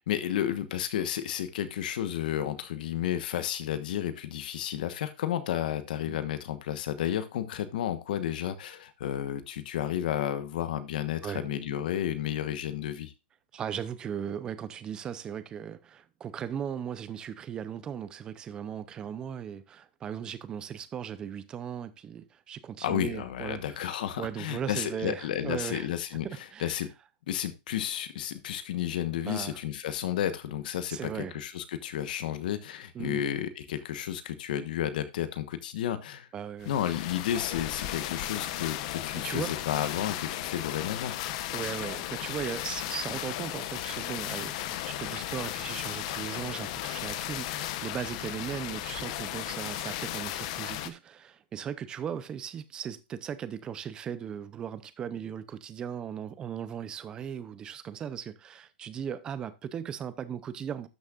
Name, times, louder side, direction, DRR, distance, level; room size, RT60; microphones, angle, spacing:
voice 1, 0.1-13.1 22.8-26.9 27.3-36.3 36.7-41.1, left 10 dB, 55° left, 1.1 m, -32 dB
voice 2, 13.5-23.9 24.2-25.9 26.2-26.8 29.2-29.6 30.9-31.4 32.9-33.3 36.3-36.7 39.2-39.5 41.5-60.9, right 8 dB, 15° right, 0.6 m, -37 dB
sound 1, 36.6-50.9, left 13 dB, 40° left, 0.8 m, -35 dB
12.5 x 6.4 x 2.4 m
hypercardioid pair, 165°, 5 cm